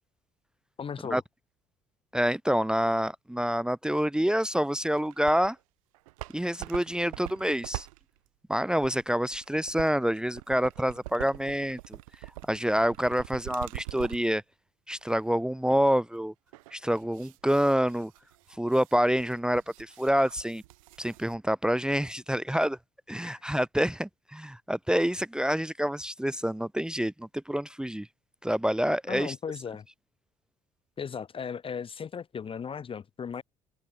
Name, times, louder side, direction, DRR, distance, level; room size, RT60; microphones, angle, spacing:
voice 1, 0.8-1.2 29.1-29.9 31.0-33.4, left 7 dB, 30° left, 0.9 m, -36 dB
voice 2, 2.1-5.6 6.3-7.9 8.5-12.0 12.5-14.4 14.9-16.3 16.7-18.1 18.6-20.6 21.0-22.8 23.1-28.1 28.4-29.3, equal, 5° right, 0.8 m, -27 dB
sound 1, 4.9-5.6 5.9-14.4 14.9-15.0 16.5-21.4, right 21 dB, 70° right, 3.2 m, -44 dB
figure-of-eight pair, 55°, 18 cm